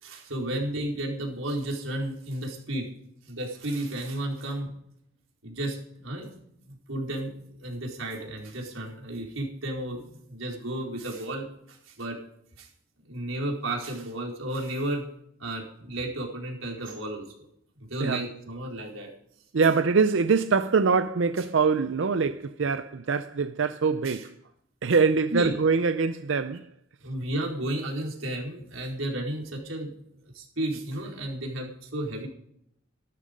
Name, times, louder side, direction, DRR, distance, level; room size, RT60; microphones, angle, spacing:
voice 1, 0.0-2.9 3.3-4.7 5.4-10.0 10.3-12.2 12.6-12.7 13.1-15.0 15.4-17.2 17.8-19.1 24.0-24.3 25.3-25.5 27.0-29.9 30.3-32.3, right 1 dB, 85° right, 4.6 m, -33 dB
voice 2, 19.5-24.3 24.8-26.7, right 5 dB, 65° right, 0.5 m, -24 dB
15.5 x 12.5 x 5.3 m
head